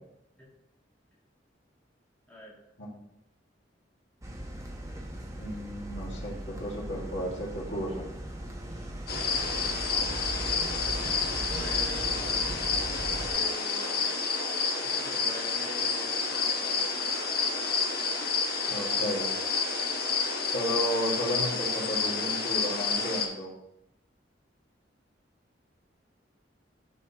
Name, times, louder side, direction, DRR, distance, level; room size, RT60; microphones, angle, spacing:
voice 1, 2.3-2.6 8.7-8.9 9.3-12.2 13.2-14.1 14.8-16.8, equal, 10° left, -6 dB, 2.0 m, -46 dB
sound 1, 4.2-13.3, right 1 dB, 15° right, 1.0 m, -38 dB
voice 2, 5.4-8.1 18.7-19.3 20.5-23.5, equal, 75° left, -3 dB, 2.0 m, -33 dB
sound 2, 9.1-23.3, left 4 dB, 60° left, 1.2 m, -29 dB
12.5 x 5.3 x 3.0 m, 0.86 s
head